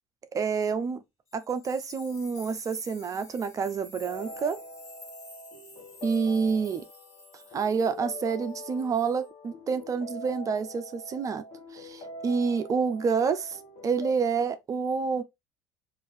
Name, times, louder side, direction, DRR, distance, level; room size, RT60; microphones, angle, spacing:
voice 1, 0.3-1.0 1.3-4.6 6.0-6.8 7.5-11.4 11.7-15.2, right 5 dB, 35° right, 0.5 m, -28 dB
sound 1, 1.3-8.6 8.9-9.3, left 3 dB, 35° left, 1.7 m, -50 dB
sound 2, 4.0-14.1, left 1 dB, 60° left, 1.1 m, -44 dB
4.6 x 2.6 x 2.5 m
hypercardioid pair, 70°, 10 cm